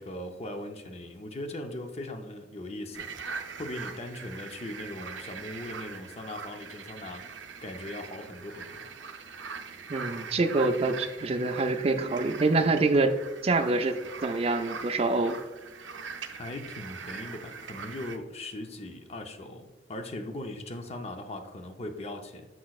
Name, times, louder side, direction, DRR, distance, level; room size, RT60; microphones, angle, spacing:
voice 1, 0.0-3.1 3.6-8.8 16.3-22.5, left 1 dB, 35° left, 6 dB, 0.6 m, -39 dB
sound 1, 2.9-18.2, right 5 dB, 80° right, 0.5 m, -42 dB
voice 2, 9.9-13.2 13.4-15.4, right 3 dB, 35° right, 6 dB, 0.4 m, -26 dB
7.5 x 6.0 x 2.3 m, 1.2 s
head